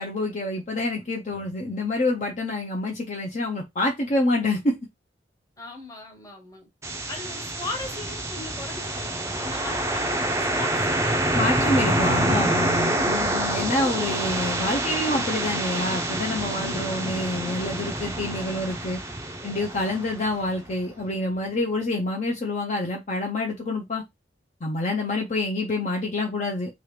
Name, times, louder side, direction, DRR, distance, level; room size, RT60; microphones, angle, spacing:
voice 1, 0.0-4.8 11.3-19.0 19.4-24.0 24.6-26.7, left 2 dB, 40° left, 0.6 m, -27 dB
voice 2, 5.6-6.7 7.1-12.7, left 2 dB, 20° left, 1.0 m, -39 dB
sound 1, 6.8-20.7, right 1 dB, 15° right, 0.5 m, -27 dB
3.0 x 2.4 x 3.2 m
head